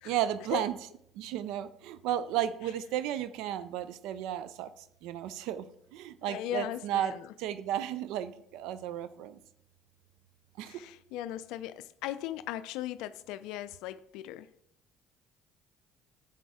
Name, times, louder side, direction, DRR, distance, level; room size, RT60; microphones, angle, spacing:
voice 1, 0.0-0.7 1.2-5.7 5.9-7.1 7.4-9.4 10.6-10.8, right 11 dB, 70° right, 0.4 m, -33 dB
voice 2, 6.3-7.3 10.6-14.5, left 12 dB, 70° left, 0.4 m, -38 dB
10.5 x 7.5 x 3.6 m
hypercardioid pair, 55°, 0 cm